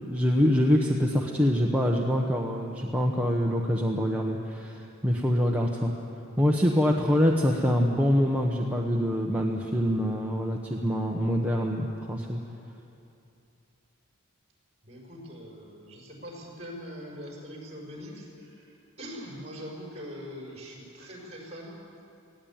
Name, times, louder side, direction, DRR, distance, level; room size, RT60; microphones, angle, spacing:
voice 1, 0.0-5.9 6.4-12.4, equal, 5° right, -2 dB, 1.1 m, -25 dB
voice 2, 14.8-21.8, equal, 30° right, -1 dB, 5.6 m, -42 dB
19.5 x 16.5 x 8.9 m, 2.7 s
head